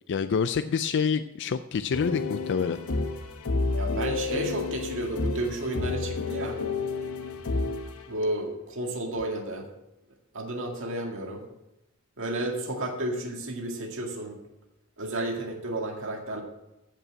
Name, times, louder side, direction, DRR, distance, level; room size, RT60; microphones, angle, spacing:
voice 1, 0.1-2.8, left 6 dB, 55° left, 11 dB, 0.4 m, -27 dB
sound 1, 1.9-8.1, left 3 dB, 75° left, 1.0 m, -30 dB
voice 2, 3.8-6.6 8.1-9.7 10.3-11.4 12.2-14.4 15.0-16.4, right 1 dB, 60° right, 2 dB, 2.1 m, -32 dB
14.5 x 5.5 x 6.2 m, 0.92 s
head